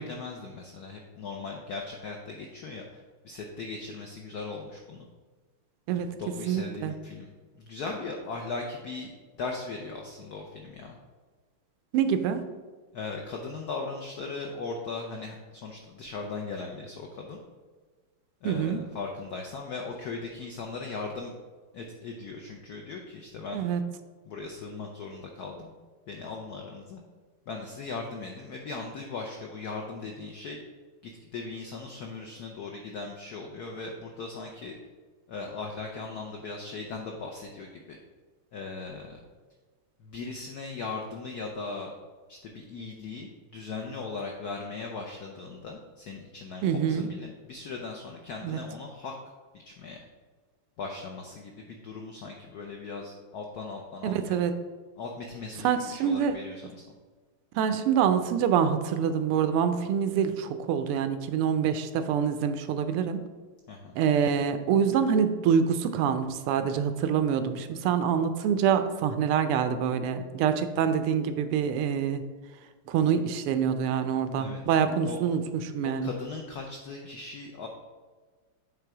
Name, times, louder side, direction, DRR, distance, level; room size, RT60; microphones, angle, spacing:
voice 1, 0.0-5.1 6.1-7.3 7.5-11.0 12.9-17.4 18.4-21.3 21.7-23.7 24.2-25.7 26.1-27.0 27.5-30.6 31.0-34.8 35.3-38.0 38.5-39.2 40.0-41.9 42.3-49.1 49.6-50.0 50.8-54.4 55.0-56.8 63.7-64.0 74.4-74.6 75.0-75.2 75.8-77.7, left 4 dB, 80° left, 1 dB, 0.8 m, -38 dB
voice 2, 6.5-6.9 11.9-12.4 18.4-18.8 23.5-23.8 46.6-47.0 48.4-48.6 54.0-54.5 55.6-56.4 57.5-63.2 64.0-72.2 72.9-75.4 75.7-76.1, right 7 dB, 85° right, 9 dB, 1.5 m, -26 dB
7.8 x 3.3 x 4.6 m, 1.4 s
omnidirectional pair, 2.4 m